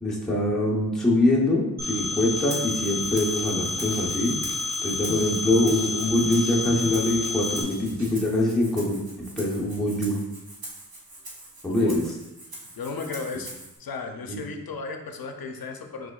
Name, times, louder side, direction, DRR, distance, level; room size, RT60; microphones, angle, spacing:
voice 1, 0.0-4.3 4.8-10.2 11.6-12.0 14.3-14.4, left 1 dB, ahead, -5 dB, 0.9 m, -24 dB
Telephone, 1.8-7.6, left 2 dB, 25° right, 1.1 m, -30 dB
sound 1, 2.0-8.2, right 1 dB, 50° right, 1.0 m, -43 dB
Rattle (instrument), 2.5-13.8, right 1 dB, 75° right, 1.1 m, -43 dB
voice 2, 11.7-12.1 12.8-13.5 13.8-16.1, left 4 dB, 70° left, 4 dB, 0.6 m, -35 dB
4.8 x 3.9 x 2.4 m, 0.96 s
wide cardioid pair, 55°, 37 cm